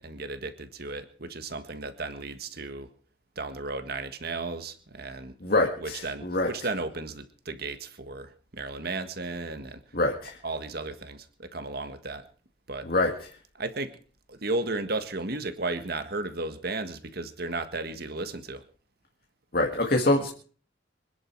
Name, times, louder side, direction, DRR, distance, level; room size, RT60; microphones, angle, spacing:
voice 1, 0.0-2.9 3.3-5.3 5.8-9.8 10.4-12.2 12.7-12.9 13.5-14.0 14.3-18.6, right 2 dB, 55° right, 10 dB, 1.7 m, -34 dB
voice 2, 5.4-6.5 9.9-10.4 12.8-13.1 19.5-20.3, left 2 dB, 50° left, 1 dB, 2.0 m, -25 dB
25.5 x 11.0 x 4.7 m, 0.43 s
head